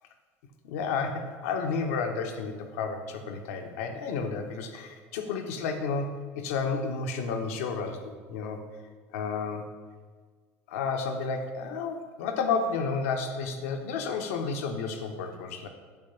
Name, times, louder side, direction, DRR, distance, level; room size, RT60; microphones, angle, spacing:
voice 1, 0.6-8.6 9.1-9.6 10.7-15.7, left 5 dB, 80° left, 5 dB, 0.7 m, -31 dB
7.0 x 3.0 x 5.6 m, 1.5 s
supercardioid pair, 85°, 7 cm